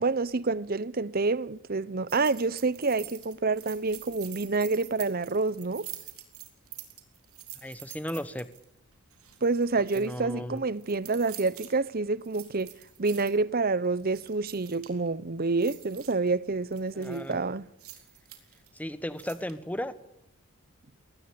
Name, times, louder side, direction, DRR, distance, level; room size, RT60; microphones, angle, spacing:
voice 1, 0.0-5.9 9.4-12.7 13.0-17.7, right 3 dB, 40° right, 0.8 m, -28 dB
sound 1, 2.1-8.6 9.1-10.1 10.6-11.7 12.2-13.3 13.8-15.1 15.5-16.3 16.7-17.3 17.8-18.8 19.2-19.5, right 14 dB, 75° right, 3.9 m, -46 dB
voice 2, 7.6-8.5 9.9-10.6 16.9-17.4 18.7-19.9, left 1 dB, 5° left, 1.1 m, -35 dB
22.5 x 18.5 x 8.6 m
head